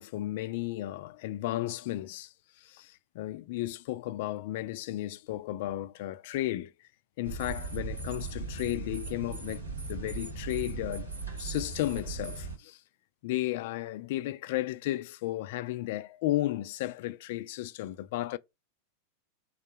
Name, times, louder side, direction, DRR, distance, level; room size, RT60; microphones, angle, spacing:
voice 1, 0.0-6.9 7.2-11.1 11.4-12.8 13.2-18.4, left 15 dB, 50° left, 0.4 m, -34 dB
sound 1, 7.2-12.6, right 4 dB, 80° right, 1.2 m, -38 dB
3.8 x 2.6 x 4.6 m
figure-of-eight pair, 90°, 0 cm